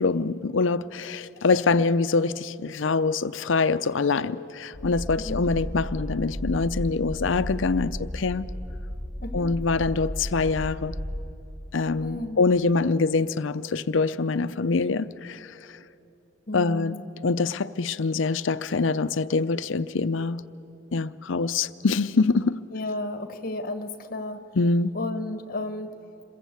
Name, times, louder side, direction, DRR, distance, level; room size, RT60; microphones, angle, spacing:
voice 1, 0.0-8.5 9.3-10.9 11.7-15.6 16.5-17.0 17.2-20.4 20.9-22.6 24.6-25.0, left 4 dB, 75° left, 0.6 m, -24 dB
sound 1, 4.7-11.3, equal, 10° right, 2.1 m, -34 dB
voice 2, 5.2-5.5 9.2-9.5 12.0-12.5 16.5-17.0 22.7-24.4 24.9-25.9, left 2 dB, 45° left, 1.3 m, -33 dB
27.0 x 22.0 x 8.2 m
head